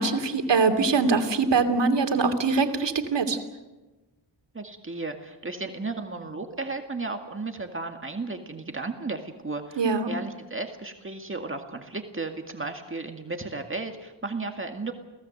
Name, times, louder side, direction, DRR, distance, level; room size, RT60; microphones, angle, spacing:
voice 1, 0.0-3.4 9.8-10.1, right 4 dB, 70° right, 7 dB, 2.8 m, -23 dB
voice 2, 4.5-14.9, right 3 dB, 30° right, 4 dB, 2.0 m, -34 dB
29.5 x 18.5 x 8.0 m, 1.2 s
wide cardioid pair, 110°, 44 cm